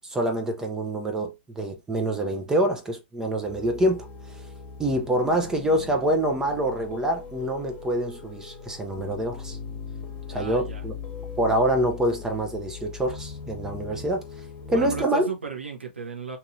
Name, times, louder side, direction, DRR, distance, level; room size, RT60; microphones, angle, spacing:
voice 1, 0.0-4.1 4.8-9.6 10.3-11.0 11.4-14.2 14.7-15.3, right 1 dB, 10° right, 0.4 m, -26 dB
sound 1, 3.4-15.0, left 5 dB, 25° left, 1.0 m, -39 dB
voice 2, 10.1-10.8 14.7-16.4, right 5 dB, 75° right, 0.9 m, -35 dB
2.9 x 2.6 x 2.5 m
figure-of-eight pair, 110°, 6 cm